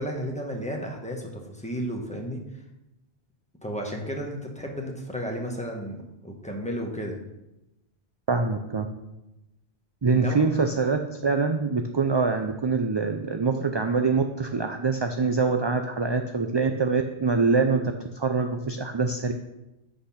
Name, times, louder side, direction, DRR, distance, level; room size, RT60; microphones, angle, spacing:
voice 1, 0.0-2.4 3.6-7.2 10.1-10.4, equal, 5° left, 0 dB, 1.3 m, -33 dB
voice 2, 8.3-8.9 10.0-17.8 18.1-19.3, right 4 dB, 35° right, 6 dB, 0.4 m, -24 dB
7.5 x 6.6 x 5.7 m, 0.94 s
omnidirectional pair, 1.1 m